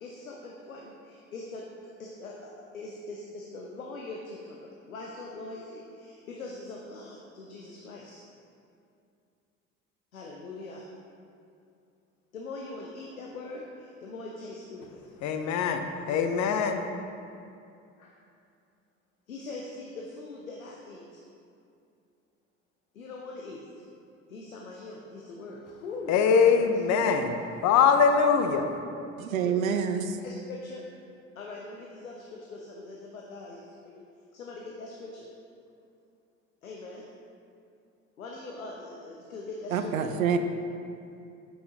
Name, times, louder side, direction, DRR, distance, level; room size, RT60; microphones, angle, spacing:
voice 1, 0.0-1.7 2.0-8.2 10.1-10.9 12.3-15.1 18.0-18.2 19.3-21.2 22.9-23.8 24.3-27.1 29.4-29.6 30.2-30.9 31.4-34.0 34.3-35.3 36.6-37.1 38.2-40.1, left 2 dB, 90° left, -1 dB, 0.6 m, -42 dB
voice 2, 15.2-16.9 26.1-27.4 27.6-28.7, left 6 dB, 45° left, 6 dB, 0.7 m, -23 dB
voice 3, 29.2-30.2 39.7-40.4, right 7 dB, 85° right, 8 dB, 0.5 m, -27 dB
8.4 x 5.7 x 2.8 m, 2.5 s
figure-of-eight pair, 60°, 40 cm